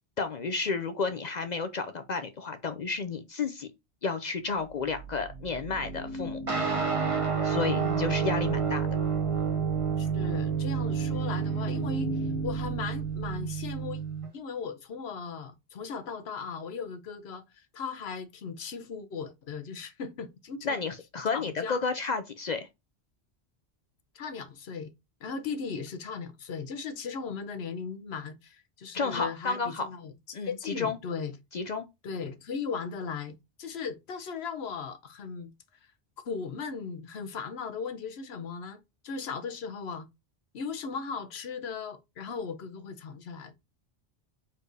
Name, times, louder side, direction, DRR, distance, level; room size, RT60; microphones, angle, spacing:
voice 1, 0.2-3.7 4.0-6.4 7.4-8.9 20.6-22.7 28.9-29.9 30.3-31.0 31.5-31.8, left 4 dB, 50° left, 0.6 m, -31 dB
sound 1, 4.5-13.8, right 1 dB, 85° right, 1.4 m, -40 dB
sound 2, 6.5-14.3, right 6 dB, 30° right, 1.4 m, -29 dB
voice 2, 7.6-8.1 10.0-14.0 14.3-20.9 21.3-21.8 24.1-24.9 25.2-31.3 32.0-35.5 36.2-40.1 40.5-43.5, left 5 dB, 75° left, 1.0 m, -37 dB
4.7 x 4.3 x 2.6 m
omnidirectional pair, 1.1 m